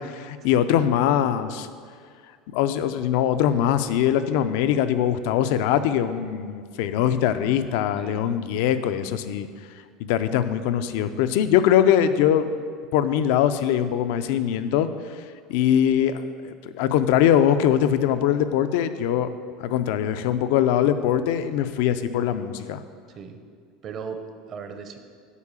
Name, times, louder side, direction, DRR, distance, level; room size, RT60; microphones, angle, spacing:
voice 1, 0.0-1.7 2.5-9.5 10.0-12.5 12.9-15.2 15.5-19.3 19.6-22.8, left 10 dB, 70° left, 11 dB, 0.5 m, -22 dB
voice 2, 8.0-8.3 23.1-23.4 23.8-24.2 24.5-25.0, right 6 dB, 35° right, 6 dB, 0.7 m, -37 dB
8.3 x 4.8 x 7.4 m, 2.1 s
cardioid pair, 155°, 0 cm